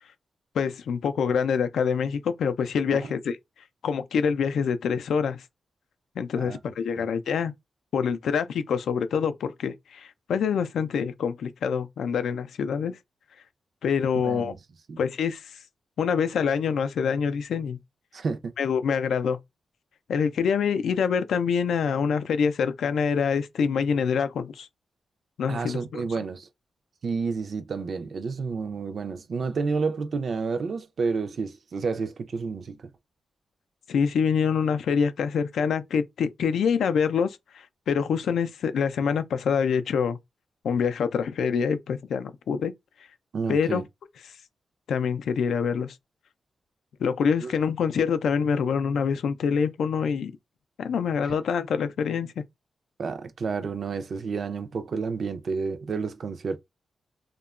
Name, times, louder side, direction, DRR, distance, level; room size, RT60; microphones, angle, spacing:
voice 1, 0.5-3.4 3.8-5.4 6.2-7.5 7.9-13.0 13.8-14.5 15.0-15.6 16.0-17.8 18.6-19.4 20.1-24.7 25.4-26.0 33.9-40.2 40.6-42.7 43.5-43.8 44.9-46.0 47.0-50.3 50.8-52.3, left 6 dB, 85° left, 0.3 m, -25 dB
voice 2, 14.2-14.5 14.9-15.0 18.1-18.5 25.5-26.5 27.0-32.9 43.3-43.8 47.4-47.5 53.0-56.6, right 4 dB, 60° right, 0.4 m, -30 dB
2.8 x 2.2 x 2.3 m
cardioid pair, 90°, 0 cm